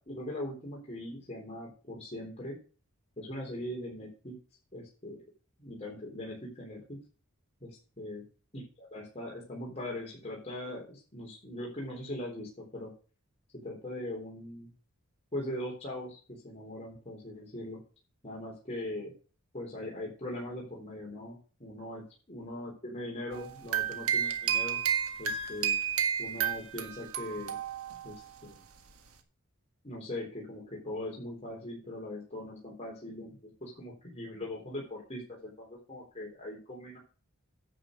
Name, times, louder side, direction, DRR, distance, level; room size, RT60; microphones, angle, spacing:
voice 1, 0.0-2.6 3.2-4.4 4.7-5.2 5.6-7.0 7.6-8.2 8.5-12.9 13.6-14.7 15.3-17.8 18.2-19.1 19.5-22.0 22.3-24.8 25.2-25.8 26.2-27.6 28.0-28.6 29.8-37.0, left 1 dB, 30° left, -3 dB, 3.8 m, -40 dB
sound 1, 23.3-28.2, right 8 dB, 75° right, 1.7 m, -31 dB
10.0 x 7.4 x 6.6 m, 0.37 s
head